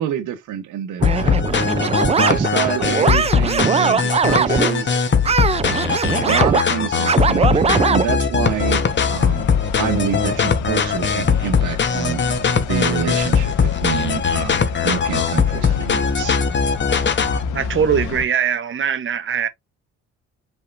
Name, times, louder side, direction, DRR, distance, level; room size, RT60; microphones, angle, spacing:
voice 1, 0.0-1.6 2.2-5.0 5.7-8.8 9.1-9.5 9.8-12.2 12.7-16.4, right 9 dB, 85° right, 1.1 m, -27 dB
sound 1, 1.0-17.4, left 6 dB, 40° left, 1.1 m, -20 dB
sound 2, 1.0-4.7 5.2-8.0, right 5 dB, 20° right, 0.4 m, -20 dB
sound 3, 8.5-18.2, left 5 dB, 85° left, 1.2 m, -30 dB
voice 2, 17.5-19.5, right 7 dB, 45° right, 0.8 m, -21 dB
5.5 x 3.6 x 2.5 m
cardioid pair, 90°, 30 cm